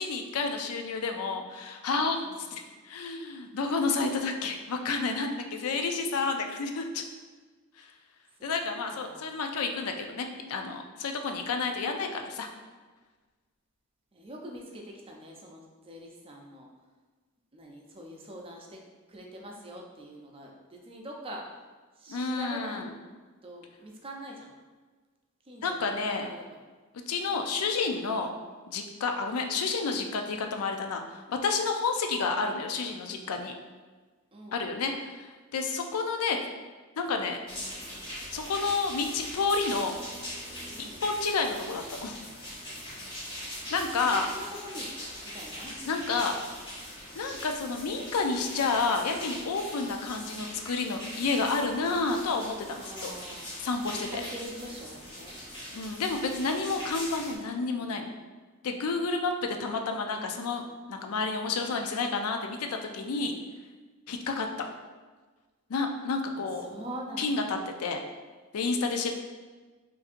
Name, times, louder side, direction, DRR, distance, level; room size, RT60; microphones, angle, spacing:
voice 1, 0.0-7.0 7.8-7.9 8.4-12.5 22.1-22.9 25.6-26.3 27.1-28.3 28.7-33.5 34.5-36.4 37.0-37.4 38.3-39.9 40.8-42.2 43.7-44.2 45.8-46.3 47.2-53.1 53.6-54.1 55.7-58.1 58.6-60.6 60.9-63.3 64.1-64.5 65.7-66.7 67.2-68.0 68.5-69.1, left 4 dB, 75° left, 5 dB, 0.4 m, -30 dB
voice 2, 2.2-2.6 8.4-8.5 8.9-9.3 14.1-16.7 17.5-18.8 19.1-21.4 22.0-22.8 23.4-24.5 25.4-25.7 26.2-26.4 34.3-34.7 40.7-41.0 44.0-44.9 45.2-45.8 52.7-53.5 54.1-55.4 57.5-57.8 61.4-61.8 66.3-67.4, right 1 dB, 25° right, 0 dB, 0.5 m, -44 dB
sound 1, 37.5-57.4, equal, 20° left, 1.2 m, -41 dB
5.3 x 2.6 x 2.5 m, 1.4 s
head